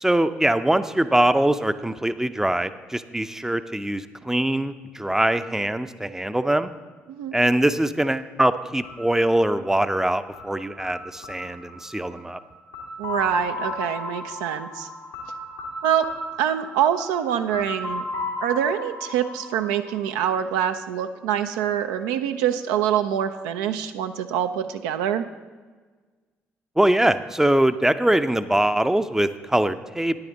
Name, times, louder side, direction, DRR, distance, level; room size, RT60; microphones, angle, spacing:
voice 1, 0.0-6.7 7.3-12.4 26.8-30.2, right 1 dB, 10° right, 12 dB, 0.5 m, -22 dB
voice 2, 7.1-7.4 13.0-14.9 15.8-16.1 16.4-18.0 18.4-25.3, right 9 dB, 75° right, 8 dB, 0.4 m, -25 dB
sound 1, 8.8-20.6, left 2 dB, 90° left, 1.8 m, -35 dB
9.8 x 9.6 x 4.0 m, 1.4 s
hypercardioid pair, 50°, 6 cm